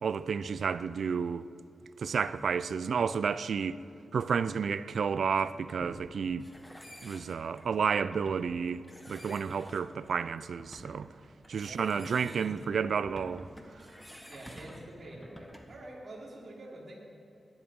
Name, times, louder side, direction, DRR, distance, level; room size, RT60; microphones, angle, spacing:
voice 1, 0.0-1.4 2.0-3.8 4.1-6.4 7.0-8.8 9.1-11.1 11.5-13.5, right 6 dB, 75° right, 0.4 m, -31 dB
sound 1, 5.4-15.9, equal, 5° left, 1.5 m, -51 dB
voice 2, 14.3-17.0, right 1 dB, 50° right, 3.9 m, -47 dB
18.0 x 11.5 x 5.4 m
wide cardioid pair, 110°, 0 cm